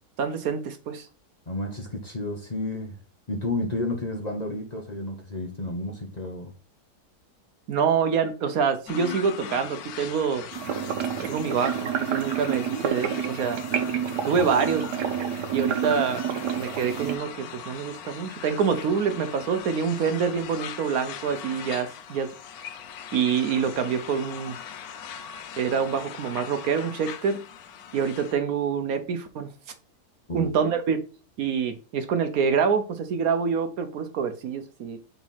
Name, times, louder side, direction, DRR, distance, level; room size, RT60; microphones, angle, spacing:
voice 1, 0.2-1.1 7.7-10.5 11.2-13.6 14.3-14.8 15.5-16.2 16.5-22.3 23.1-24.6 25.6-27.4 27.9-29.5 30.3-31.0 31.4-35.0, right 6 dB, 65° right, 1.1 m, -26 dB
voice 2, 1.5-2.9 3.3-6.5 30.3-30.5, left 2 dB, 30° left, 1.1 m, -31 dB
sound 1, 8.9-28.3, left 8 dB, 70° left, 1.1 m, -40 dB
sound 2, 10.5-17.2, right 8 dB, 85° right, 1.4 m, -29 dB
4.6 x 4.1 x 5.4 m
omnidirectional pair, 1.7 m